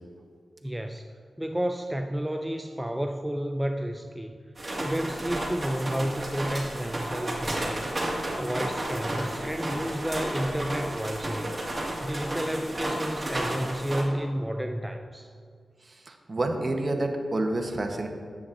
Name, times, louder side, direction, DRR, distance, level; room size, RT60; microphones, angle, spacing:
voice 1, 0.6-1.1 1.4-4.3 4.7-15.3, equal, 10° right, 4 dB, 0.4 m, -31 dB
sound 1, 4.6-14.0, right 1 dB, 25° right, 1.8 m, -32 dB
voice 2, 15.9-18.1, right 2 dB, 40° right, 4 dB, 0.9 m, -29 dB
9.9 x 8.1 x 2.6 m, 2.1 s
cardioid pair, 60°, 0 cm